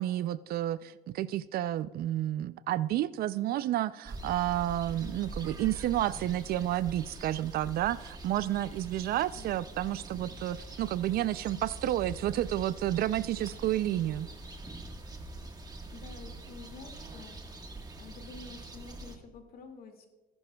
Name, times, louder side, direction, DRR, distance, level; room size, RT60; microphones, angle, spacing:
voice 1, 0.0-14.3, right 13 dB, 65° right, 17 dB, 0.4 m, -30 dB
sound 1, 4.0-19.2, right 2 dB, 25° right, 1.4 m, -44 dB
voice 2, 15.9-17.6 18.0-20.1, left 4 dB, 60° left, 4 dB, 2.1 m, -49 dB
18.5 x 11.0 x 2.3 m, 1.1 s
cardioid pair, 110°, 17 cm